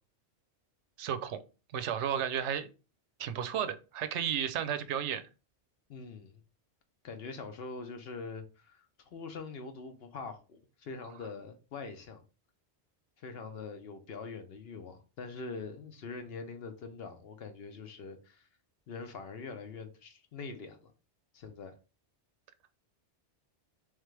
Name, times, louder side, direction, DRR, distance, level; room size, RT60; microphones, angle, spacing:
voice 1, 1.0-1.4 1.7-2.7 3.2-5.3, right 9 dB, 80° right, 0.9 m, -33 dB
voice 2, 5.9-6.4 7.0-12.2 13.2-18.5 18.9-20.9 21.3-21.7, left 4 dB, 60° left, 0.9 m, -44 dB
3.6 x 3.3 x 3.2 m
omnidirectional pair, 1.2 m